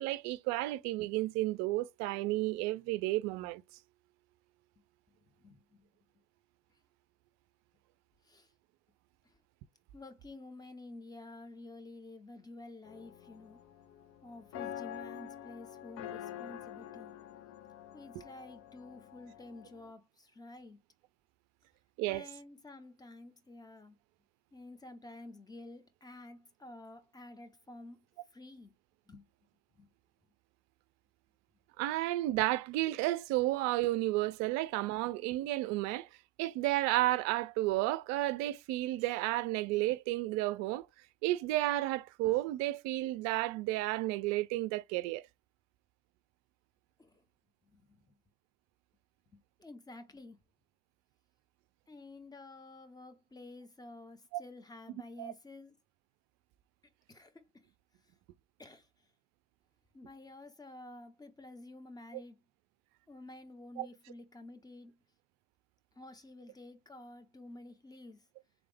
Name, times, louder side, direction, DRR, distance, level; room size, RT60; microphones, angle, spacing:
voice 1, 0.0-3.6 22.0-22.3 31.8-36.1 36.4-40.9 41.2-45.2 54.3-54.4 55.2-55.3 63.8-63.9, right 17 dB, 50° right, 0.4 m, -32 dB
voice 2, 5.4-5.9 8.2-8.5 9.2-9.4 9.9-13.6 14.2-17.2 17.9-20.8 22.1-24.0 24.5-28.0 28.3-28.7 29.1-29.2 29.7-29.9 47.0-47.2 47.6-48.1 49.3-50.4 51.9-55.8 57.1-57.7 58.6-59.1 59.9-62.4 63.1-65.0 65.9-68.3, left 2 dB, 10° left, 0.8 m, -51 dB
sound 1, 12.8-19.9, left 11 dB, 45° left, 0.5 m, -47 dB
3.7 x 3.4 x 3.3 m
figure-of-eight pair, 65°, 36 cm